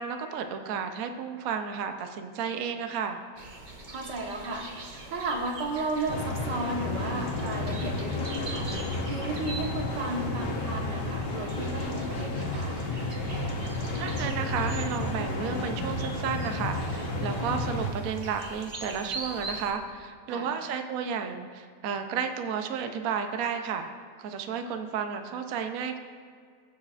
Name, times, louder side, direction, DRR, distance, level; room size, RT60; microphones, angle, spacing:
voice 1, 0.0-3.2 14.0-23.9 24.2-26.0, right 7 dB, 65° right, 6 dB, 1.0 m, -32 dB
sound 1, 3.4-19.7, right 2 dB, 35° right, 0.9 m, -43 dB
voice 2, 3.9-4.7 5.1-8.7 9.1-12.8 20.3-20.5, right 2 dB, 85° right, 0 dB, 1.9 m, -34 dB
sound 2, 6.1-17.9, left 2 dB, 85° left, 1.8 m, -32 dB
21.5 x 7.4 x 2.5 m, 2.1 s
omnidirectional pair, 1.8 m